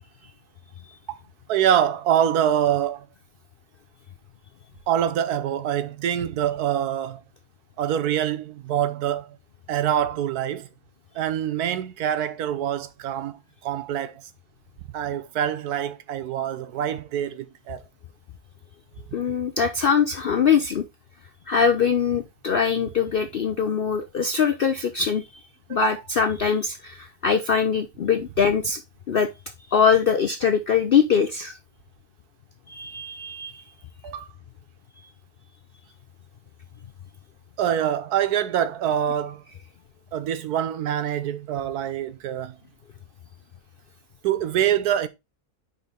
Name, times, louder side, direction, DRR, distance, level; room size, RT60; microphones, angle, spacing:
voice 1, 1.5-3.0 4.9-7.2 7.8-9.3 9.7-10.7 11.1-14.1 14.9-17.8 25.7-25.9 34.0-34.3 37.6-39.4 40.1-42.5 44.2-45.1, right 10 dB, 80° right, 1.3 m, -25 dB
voice 2, 19.1-20.8 21.5-25.4 25.7-28.8 29.1-29.3 29.7-31.6 32.7-33.6, left 6 dB, 65° left, 0.5 m, -22 dB
5.1 x 4.0 x 5.0 m
omnidirectional pair, 1.6 m